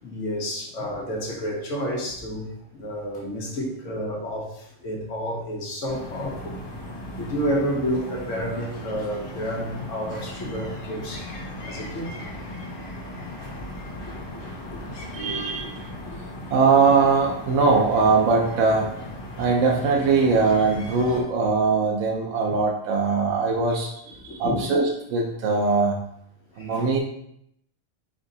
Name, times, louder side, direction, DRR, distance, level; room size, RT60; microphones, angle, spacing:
voice 1, 0.0-2.5 2.7-6.6 7.1-11.3 11.6-12.3 13.1-13.7 14.0-14.1 14.6-14.9 15.9-16.2 22.5-22.6 24.2-24.7 26.6-26.9, equal, 75° left, -1 dB, 1.3 m, -30 dB
sound 1, 5.9-21.2, left 1 dB, 50° left, 1.0 m, -37 dB
voice 2, 15.1-15.8 16.5-18.9 19.4-26.0 26.6-27.0, right 4 dB, 90° right, 0 dB, 1.0 m, -21 dB
4.9 x 2.7 x 3.9 m, 0.74 s
omnidirectional pair, 1.3 m